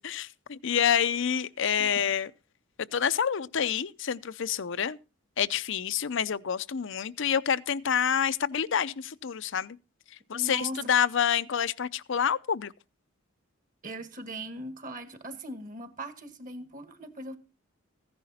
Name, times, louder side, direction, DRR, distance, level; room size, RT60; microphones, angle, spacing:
voice 1, 0.0-2.3 2.9-5.0 5.4-9.8 10.3-12.7, left 8 dB, 65° left, 0.6 m, -28 dB
voice 2, 10.3-10.9 13.8-17.4, right 1 dB, 40° right, 1.8 m, -40 dB
15.5 x 10.5 x 4.2 m
head